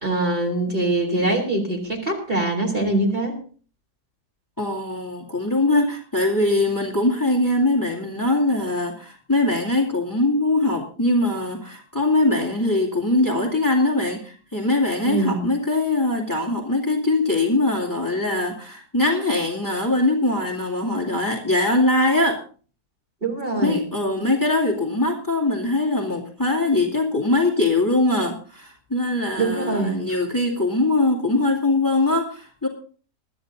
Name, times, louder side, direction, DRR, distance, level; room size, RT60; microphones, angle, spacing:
voice 1, 0.0-3.4 15.0-15.5 23.2-23.8 29.4-30.0, right 2 dB, 35° right, 2 dB, 3.7 m, -23 dB
voice 2, 0.9-1.4 4.6-22.4 23.6-32.7, left 2 dB, 10° left, -1 dB, 2.5 m, -22 dB
21.0 x 13.0 x 2.7 m, 0.40 s
omnidirectional pair, 1.7 m